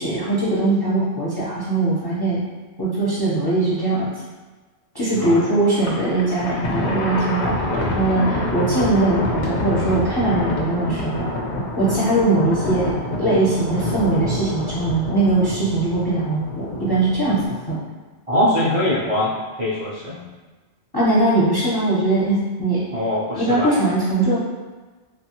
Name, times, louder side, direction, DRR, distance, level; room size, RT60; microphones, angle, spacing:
voice 1, 0.0-2.4 2.8-4.1 4.9-11.2 11.8-17.8 20.9-22.8 23.4-24.4, right 2 dB, 30° left, -9 dB, 0.5 m, -21 dB
Thunder, 5.7-17.5, left 2 dB, 90° left, 0.9 m, -27 dB
voice 2, 18.3-19.3 19.6-20.3 22.9-23.7, left 1 dB, 45° right, -10 dB, 0.5 m, -22 dB
3.0 x 2.3 x 2.8 m, 1.3 s
omnidirectional pair, 1.1 m